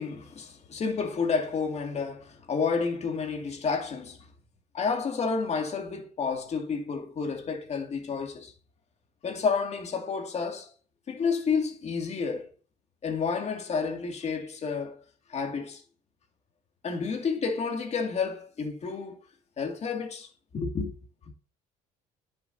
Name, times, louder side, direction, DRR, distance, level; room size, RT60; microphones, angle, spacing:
voice 1, 0.0-4.3 4.7-8.5 9.2-10.7 11.1-12.5 13.0-15.0 15.3-15.8 16.8-19.2 19.6-20.3 20.5-20.9, left 5 dB, 40° left, 2.2 m, -30 dB
10.0 x 7.0 x 2.7 m
cardioid pair, 110°, 17 cm